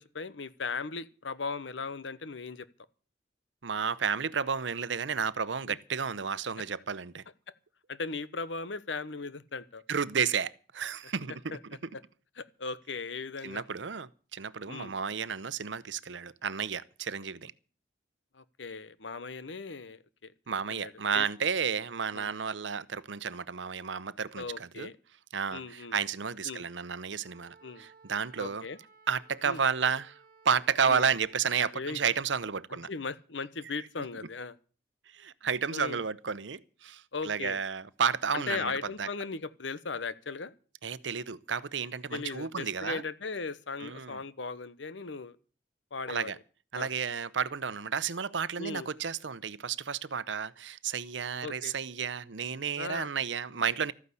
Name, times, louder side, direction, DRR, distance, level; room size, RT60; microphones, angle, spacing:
voice 1, 0.0-2.7 5.7-5.8 7.9-9.8 11.5-11.6 12.4-13.6 14.7-14.9 18.3-20.3 20.7-21.3 22.1-22.3 24.3-24.9 25.5-25.9 26.4-26.6 27.6-27.9 28.4-28.8 29.4-29.6 30.9-31.1 31.7-32.0 32.9-34.5 35.7-36.0 37.1-37.6 38.3-40.5 42.1-45.4 45.9-46.3 46.7-46.9 48.6-48.9 51.4-51.7 52.8-53.1, left 4 dB, 90° left, 1.0 m, -38 dB
voice 2, 3.6-7.2 9.9-11.6 13.4-17.5 20.5-24.9 25.3-28.7 29.1-30.1 30.4-32.9 35.1-38.7 39.0-39.1 40.8-43.0 43.8-44.2 46.1-46.4 46.7-53.9, right 6 dB, 85° right, 0.8 m, -32 dB
Wind instrument woodwind instrument, 27.2-31.5, right 4 dB, 50° right, 1.7 m, -59 dB
13.5 x 9.6 x 8.4 m
head